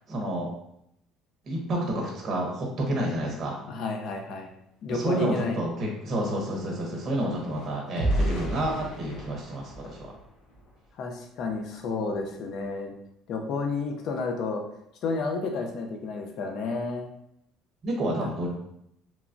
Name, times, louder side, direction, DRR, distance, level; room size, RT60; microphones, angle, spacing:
voice 1, 0.1-0.5 1.5-3.7 4.9-10.1 17.8-18.5, right 1 dB, 35° right, -1 dB, 0.7 m, -29 dB
voice 2, 3.7-4.5 4.8-5.6 11.0-12.9 13.3-14.6 15.0-17.1 18.2-18.3, left 3 dB, 55° left, 3 dB, 0.5 m, -31 dB
sound 1, 5.7-10.9 11.4-11.6 12.0-12.2, right 1 dB, 90° left, 0.9 m, -34 dB
3.0 x 2.2 x 2.5 m, 0.75 s
cardioid pair, 140°, 0 cm